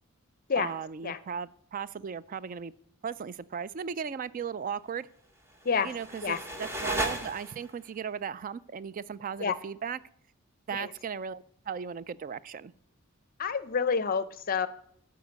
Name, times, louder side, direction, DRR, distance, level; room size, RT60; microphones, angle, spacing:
voice 1, 0.6-2.7 3.0-5.1 5.8-10.0 10.7-12.7, right 7 dB, 40° right, 18 dB, 0.3 m, -37 dB
sound 1, 5.5-7.9, right 1 dB, 10° right, 1.1 m, -35 dB
voice 2, 13.4-14.7, left 6 dB, 40° left, 14 dB, 0.6 m, -28 dB
13.0 x 4.7 x 8.1 m, 0.67 s
head